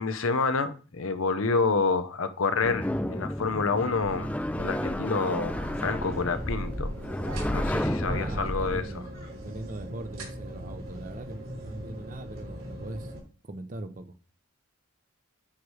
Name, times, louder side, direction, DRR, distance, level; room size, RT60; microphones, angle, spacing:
voice 1, 0.0-6.9 7.5-8.9, left 4 dB, 75° left, 0.7 m, -28 dB
sound 1, 2.6-8.8, left 1 dB, 5° left, 0.4 m, -31 dB
sound 2, 5.5-13.2, right 1 dB, 85° right, 3.1 m, -41 dB
voice 2, 8.0-9.1 9.4-13.1 13.4-14.1, right 2 dB, 40° right, 0.6 m, -40 dB
9.5 x 3.2 x 4.8 m
head